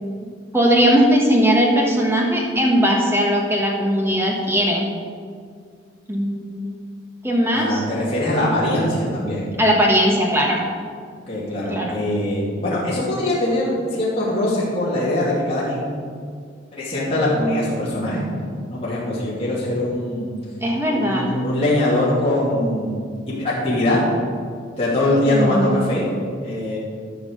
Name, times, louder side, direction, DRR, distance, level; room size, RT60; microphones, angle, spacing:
voice 1, 0.5-4.9 6.1-6.8 7.2-7.8 9.6-10.6 11.7-12.0 20.6-21.3 25.3-25.8, equal, 10° right, 0 dB, 1.5 m, -19 dB
voice 2, 7.5-9.5 11.3-16.0 16.7-18.2 18.7-20.3 20.9-23.0 23.3-24.0 24.8-26.1 26.4-26.8, left 1 dB, 30° left, -8 dB, 2.8 m, -22 dB
12.0 x 5.9 x 6.6 m, 2.1 s
head